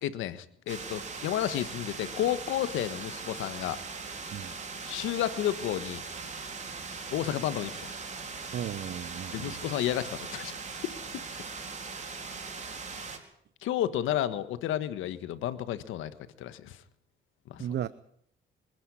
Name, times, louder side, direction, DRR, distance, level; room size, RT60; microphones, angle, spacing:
voice 1, 0.0-3.8 4.8-6.0 7.1-7.8 9.3-10.5 11.1-11.2 13.6-16.8 17.5-17.6, left 11 dB, 90° left, 1.5 m, -31 dB
sound 1, 0.7-13.2, right 4 dB, 35° right, 4.3 m, -40 dB
voice 2, 8.5-9.6 17.6-17.9, right 10 dB, 60° right, 0.9 m, -35 dB
25.0 x 11.5 x 10.0 m
cardioid pair, 90°, 20 cm